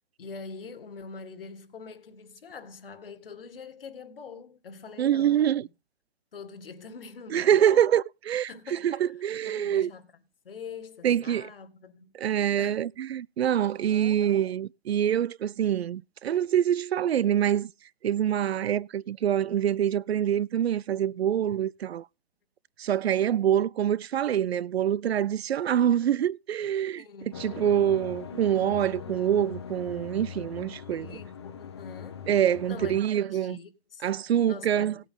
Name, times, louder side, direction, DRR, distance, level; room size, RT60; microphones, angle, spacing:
voice 1, 0.2-5.6 6.3-7.9 8.5-9.1 9.4-10.1 10.4-12.2 12.6-12.9 13.9-14.5 27.0-27.4 30.9-32.3 32.7-32.9 33.2-34.0 34.5-35.0, left 5 dB, 65° left, 2.0 m, -44 dB
voice 2, 5.0-5.7 7.3-9.9 11.0-11.5 12.2-17.7 18.0-22.1 22.8-27.0 27.4-31.2 32.3-33.6 34.0-35.0, right 10 dB, 80° right, 0.6 m, -25 dB
sound 1, 27.3-33.0, left 7 dB, 25° left, 0.8 m, -41 dB
17.5 x 8.3 x 3.8 m
hypercardioid pair, 180°, 31 cm